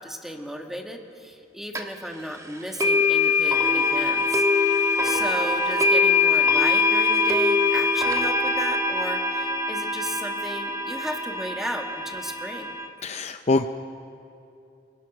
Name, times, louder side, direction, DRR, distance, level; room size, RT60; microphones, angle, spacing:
voice 1, 0.0-4.4 4.7-12.7, equal, ahead, 3 dB, 1.6 m, -35 dB
sound 1, 1.8-1.9 2.8-12.9, left 4 dB, 20° right, 1.5 m, -23 dB
voice 2, 13.0-13.7, left 3 dB, 40° left, 8 dB, 0.6 m, -24 dB
25.5 x 22.0 x 6.0 m, 2.6 s
head